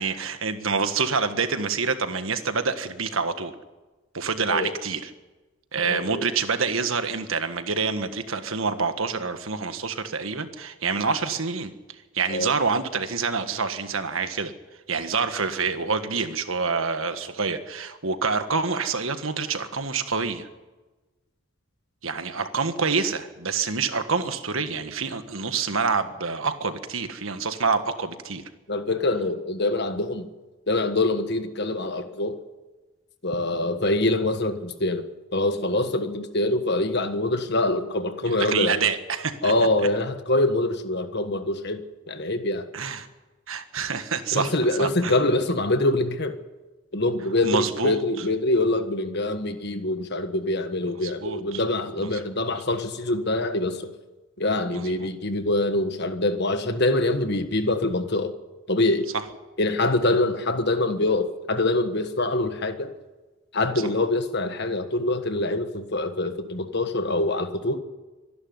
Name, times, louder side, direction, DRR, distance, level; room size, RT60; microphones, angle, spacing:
voice 1, 0.0-3.5 4.1-5.0 5.7-11.7 12.1-14.5 14.9-20.5 22.0-28.4 38.3-39.5 42.7-43.1 43.5-44.5 44.8-45.2 47.4-48.0 51.0-51.6 52.0-52.1 54.7-55.1, right 5 dB, 70° right, 9 dB, 1.6 m, -27 dB
voice 2, 5.8-6.3 12.3-12.5 28.7-30.3 30.7-32.4 33.2-38.8 39.4-42.7 44.3-46.4 46.9-53.9 54.4-58.3 58.7-59.1 59.6-62.9 63.5-67.8, left 2 dB, 50° left, 8 dB, 1.6 m, -25 dB
25.0 x 11.5 x 9.7 m, 1.2 s
head